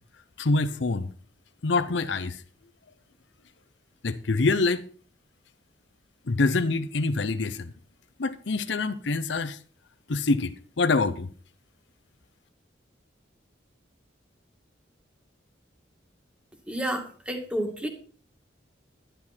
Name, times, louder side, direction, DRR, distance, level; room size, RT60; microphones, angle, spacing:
voice 1, 0.4-1.1 1.6-2.4 4.0-4.9 6.3-7.7 8.2-9.6 10.1-11.3, left 3 dB, 70° left, 0.7 m, -25 dB
voice 2, 16.7-17.9, right 1 dB, 5° right, 2.2 m, -30 dB
11.5 x 11.0 x 4.3 m
head